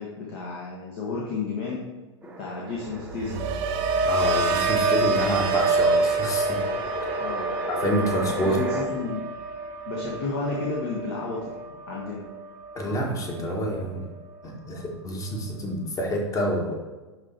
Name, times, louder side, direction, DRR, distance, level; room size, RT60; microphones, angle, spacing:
voice 1, 0.0-1.8 2.4-3.5 7.2-7.5 8.4-9.3 9.8-11.5 11.9-12.2, left 4 dB, 50° left, -3 dB, 1.7 m, -32 dB
sound 1, 2.2-8.8, right 1 dB, 10° right, 1.3 m, -36 dB
sound 2, 2.9-13.0 13.3-13.8, right 3 dB, 35° right, 0.8 m, -27 dB
voice 2, 4.0-6.6 7.7-8.6 12.7-14.1 14.4-16.8, equal, 20° left, 1 dB, 1.6 m, -28 dB
11.5 x 3.9 x 4.5 m, 1.2 s
figure-of-eight pair, 95°, 15 cm